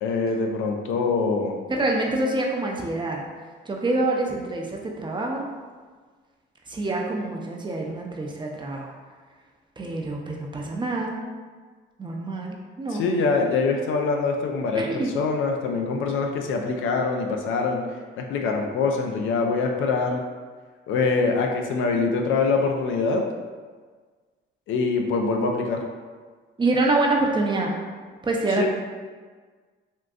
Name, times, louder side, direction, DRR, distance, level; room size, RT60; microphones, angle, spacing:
voice 1, 0.0-1.6 13.0-17.8 18.2-20.2 20.9-23.2 24.7-25.8 28.6-28.7, left 4 dB, 85° left, 2 dB, 0.4 m, -24 dB
voice 2, 1.7-3.3 3.7-5.5 6.7-8.9 9.8-11.1 12.0-13.0 14.8-15.1 26.6-27.7 28.2-28.7, right 2 dB, 25° right, 0 dB, 0.5 m, -26 dB
3.6 x 2.5 x 2.3 m, 1.5 s
cardioid pair, 90°, 20 cm